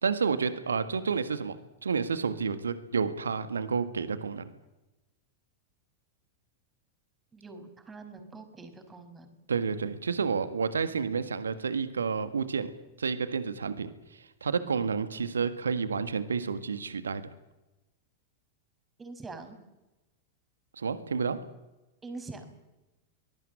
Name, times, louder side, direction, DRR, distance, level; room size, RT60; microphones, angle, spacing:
voice 1, 0.0-4.4 9.5-12.7 13.0-17.2 20.8-21.4, right 5 dB, 70° right, 11 dB, 1.7 m, -30 dB
voice 2, 7.3-9.4 19.0-19.6 22.0-22.4, right 3 dB, 15° right, 7 dB, 5.6 m, -44 dB
24.0 x 18.5 x 8.7 m, 1.0 s
figure-of-eight pair, 90°, 0 cm